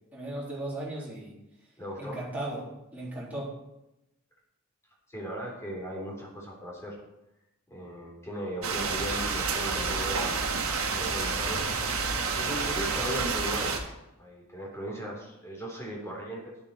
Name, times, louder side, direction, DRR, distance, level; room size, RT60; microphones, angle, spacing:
voice 1, 0.1-1.3 2.0-3.6, right 1 dB, 5° right, -7 dB, 3.8 m, -36 dB
voice 2, 1.8-2.2 5.1-7.0 7.7-10.4 10.8-11.7 12.3-13.8 14.2-16.5, equal, 15° left, -2 dB, 3.8 m, -37 dB
sound 1, 8.6-13.8, right 4 dB, 85° right, 1.9 m, -29 dB
12.0 x 10.5 x 4.4 m, 0.91 s
head